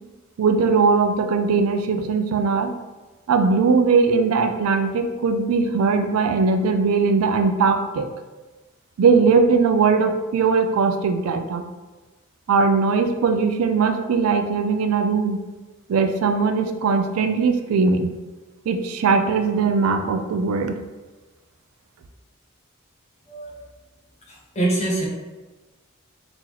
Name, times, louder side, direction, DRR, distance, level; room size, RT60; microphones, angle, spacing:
voice 1, 0.4-2.7 3.3-8.1 9.0-11.7 12.5-15.4 15.9-18.1 18.7-20.8, right 4 dB, 85° right, 8 dB, 0.4 m, -20 dB
voice 2, 24.3-25.1, right 2 dB, 30° left, -4 dB, 0.9 m, -24 dB
3.8 x 3.0 x 2.9 m, 1.2 s
head